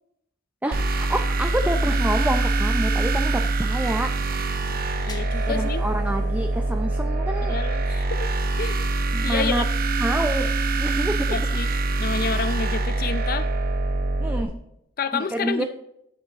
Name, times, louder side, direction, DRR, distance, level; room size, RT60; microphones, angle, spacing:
voice 1, 0.6-4.1 5.5-7.6 9.1-9.6 10.0-10.5 10.8-11.3 14.2-14.6 15.1-15.6, right 1 dB, 10° right, 5 dB, 0.5 m, -27 dB
sound 1, 0.7-14.4, right 2 dB, 50° right, 0.9 m, -24 dB
sound 2, 1.4-6.3, equal, 20° left, 1.0 m, -34 dB
voice 2, 5.1-5.8 7.5-8.3 8.6-8.8 9.2-9.7 11.3-11.7 12.0-13.5 15.0-15.6, left 5 dB, 50° left, 12 dB, 0.5 m, -29 dB
12.5 x 8.5 x 2.9 m, 0.78 s
head